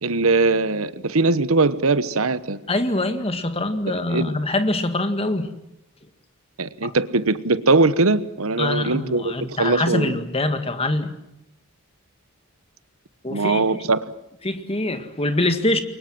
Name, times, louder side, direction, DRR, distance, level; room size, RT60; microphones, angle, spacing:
voice 1, 0.0-2.6 3.9-4.3 6.6-10.2 13.3-14.0, right 3 dB, 75° right, 1.1 m, -21 dB
voice 2, 2.7-5.5 6.8-6.9 8.6-11.2 13.2-13.6 14.4-15.8, left 2 dB, 25° left, 2.0 m, -24 dB
29.0 x 24.0 x 7.7 m
head